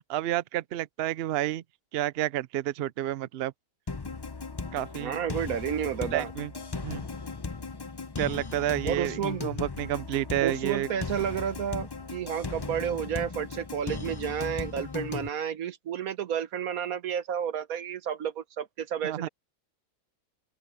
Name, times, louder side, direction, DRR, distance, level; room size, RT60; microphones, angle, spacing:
voice 1, 0.1-1.6 1.9-3.5 4.7-5.2 6.1-6.5 6.8-7.1 8.2-10.9 19.0-19.3, right 13 dB, 80° right, 0.5 m, -30 dB
sound 1, 3.9-15.3, left 4 dB, 35° left, 0.4 m, -37 dB
voice 2, 5.0-6.3 8.8-9.5 10.4-19.3, right 9 dB, 65° right, 1.4 m, -31 dB
open air
omnidirectional pair, 1.7 m